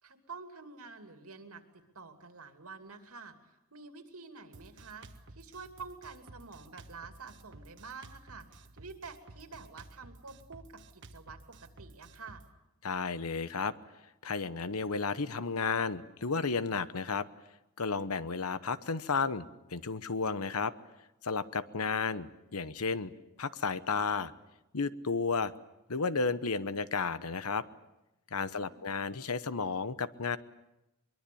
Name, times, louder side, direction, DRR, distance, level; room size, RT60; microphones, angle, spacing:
voice 1, 0.0-3.4 3.7-12.4 28.4-28.9, right 4 dB, 75° right, 6 dB, 2.7 m, -49 dB
Drum kit, 4.5-12.5, right 2 dB, 55° right, 1.4 m, -53 dB
voice 2, 12.8-13.7 14.2-17.3 17.8-20.7 21.2-23.1 23.4-24.3 24.7-25.5 25.9-27.7 28.3-30.4, left 4 dB, 85° left, 15 dB, 1.0 m, -32 dB
23.5 x 23.0 x 8.6 m, 0.92 s
head